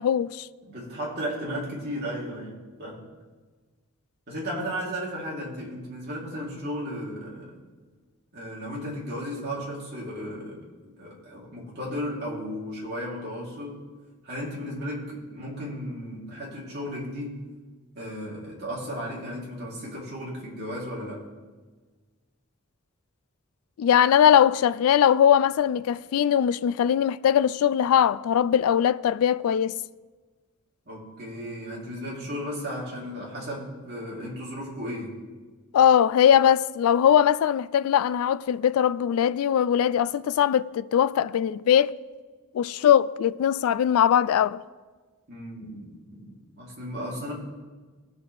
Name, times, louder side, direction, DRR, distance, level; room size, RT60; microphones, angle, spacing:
voice 1, 0.0-0.5 23.8-29.8 35.7-41.9 42.5-44.6, left 9 dB, 80° left, 0.3 m, -21 dB
voice 2, 0.7-3.0 4.3-7.6 8.3-13.8 14.2-17.4 17.9-21.3 30.8-35.2 45.3-47.3, equal, 50° right, 3.1 m, -35 dB
19.5 x 6.8 x 3.3 m
head